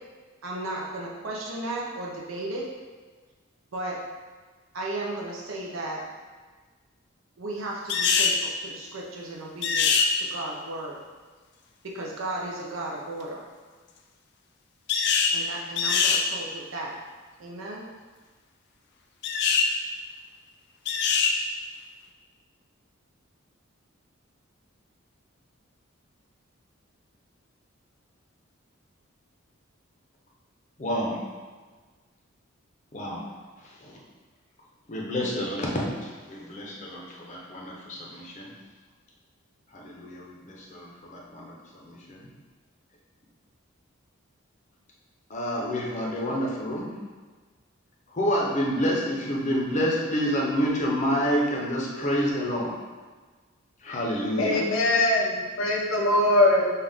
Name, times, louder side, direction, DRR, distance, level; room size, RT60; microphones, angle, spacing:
voice 1, 0.4-2.7 3.7-4.0 4.7-6.0 7.4-10.9 11.8-13.5 15.3-16.9 17.4-17.9, right 2 dB, 75° right, -3 dB, 0.6 m, -35 dB
sound 1, 7.9-8.4 9.6-10.1 14.9-15.4 15.8-16.2 19.2-19.7 20.8-21.4, left 5 dB, 55° left, 0.4 m, -22 dB
voice 2, 30.8-31.2 32.9-33.2 33.6-34.0 34.9-38.5 39.7-41.5 41.8-42.3 45.3-46.9 48.1-52.8 53.8-54.6, equal, 35° left, -3 dB, 0.7 m, -28 dB
voice 3, 54.4-56.7, left 1 dB, 80° left, -2 dB, 0.8 m, -22 dB
5.5 x 2.4 x 3.5 m, 1.4 s
head